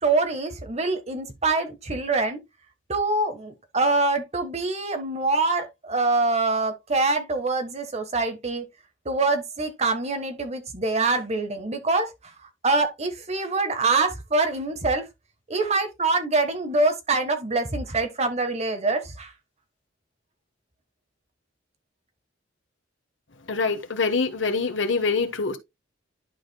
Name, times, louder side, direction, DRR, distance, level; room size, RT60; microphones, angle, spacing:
voice 1, 0.0-2.4 2.9-8.6 9.0-15.1 15.5-19.3, right 3 dB, 35° right, 1.3 m, -25 dB
voice 2, 23.5-25.6, left 4 dB, 75° left, 1.2 m, -25 dB
11.0 x 5.0 x 2.2 m
head